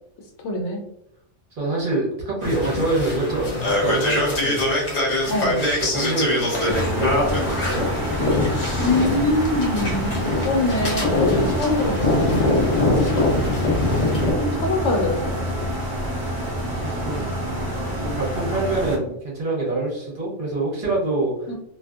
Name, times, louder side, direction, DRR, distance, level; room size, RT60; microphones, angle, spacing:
voice 1, 0.4-0.8 5.3-5.6 8.8-12.6 14.3-15.4 21.5-21.6, left 2 dB, 75° left, 1 dB, 1.0 m, -24 dB
voice 2, 1.6-4.6 5.5-7.9 16.8-17.2 18.0-21.5, right 2 dB, 50° right, -4 dB, 0.9 m, -26 dB
sound 1, 2.4-14.3, left 2 dB, 40° left, 0.7 m, -23 dB
sound 2, 6.7-19.0, equal, 20° right, 0.7 m, -27 dB
2.6 x 2.5 x 2.3 m, 0.79 s
omnidirectional pair, 1.3 m